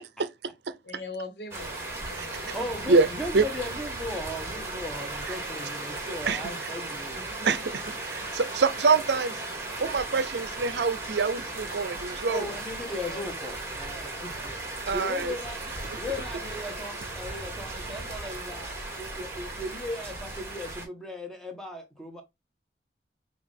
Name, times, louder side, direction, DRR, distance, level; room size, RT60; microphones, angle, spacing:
voice 1, 0.8-3.1 7.1-7.5 13.1-13.4, left 2 dB, 75° left, 1.2 m, -42 dB
sound 1, 1.5-20.9, right 2 dB, 15° right, 1.4 m, -36 dB
voice 2, 2.5-7.3 12.3-14.6 14.9-15.6 15.9-18.7 19.0-22.2, left 1 dB, 5° left, 1.0 m, -37 dB
voice 3, 7.4-9.4 9.8-12.5 14.9-15.3, right 4 dB, 75° right, 0.5 m, -25 dB
5.9 x 2.4 x 3.5 m
head